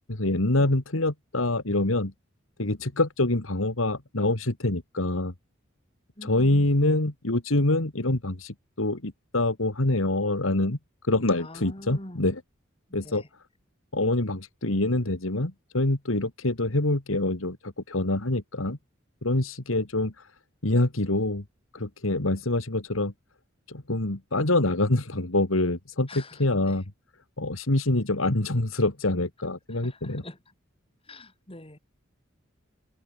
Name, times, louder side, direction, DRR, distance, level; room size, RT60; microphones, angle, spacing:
voice 1, 0.1-2.1 2.6-5.3 6.2-10.8 11.1-12.3 12.9-13.2 13.9-18.8 19.2-20.1 20.6-21.4 21.7-23.1 23.7-26.1 26.4-26.8 27.4-30.2, left 2 dB, 85° left, 2.4 m, -25 dB
voice 2, 6.2-6.7 11.4-12.2 12.9-13.3 26.1-26.8 29.7-30.5 31.0-31.8, left 1 dB, 30° left, 5.2 m, -45 dB
head